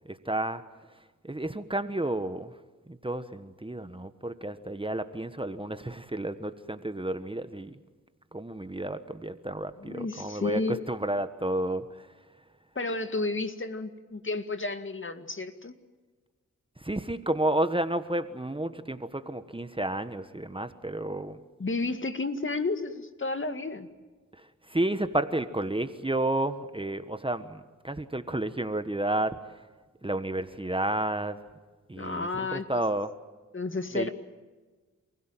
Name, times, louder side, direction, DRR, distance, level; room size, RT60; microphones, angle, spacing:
voice 1, 0.0-0.6 0.9-2.6 2.9-7.8 8.3-12.1 16.8-21.4 24.3-29.6 30.0-31.4 31.9-33.1 33.9-34.1, right 1 dB, 15° right, 10 dB, 1.4 m, -31 dB
voice 2, 9.8-10.9 12.8-15.7 21.6-23.9 31.9-32.7 33.5-34.1, left 3 dB, 35° left, 9 dB, 2.0 m, -31 dB
28.5 x 16.5 x 9.1 m, 1.3 s
cardioid pair, 50°, 33 cm